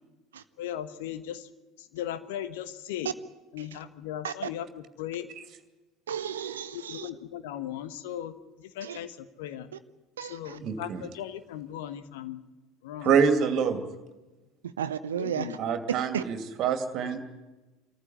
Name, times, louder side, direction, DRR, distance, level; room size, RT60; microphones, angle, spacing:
voice 1, 0.6-1.5 1.8-3.1 3.5-5.3 6.7-8.3 8.6-9.7 10.2-12.4 12.8-13.2 15.2-15.7, left 11 dB, 65° left, 12 dB, 1.2 m, -37 dB
voice 2, 6.1-7.1 8.8-9.0 10.2-10.6 14.8-15.5 16.1-16.2, right 8 dB, 75° right, 13 dB, 0.7 m, -33 dB
voice 3, 10.6-11.0 13.0-13.8 15.6-17.2, right 6 dB, 45° right, 8 dB, 2.7 m, -26 dB
25.0 x 14.5 x 9.7 m, 1.1 s
figure-of-eight pair, 70°, 0 cm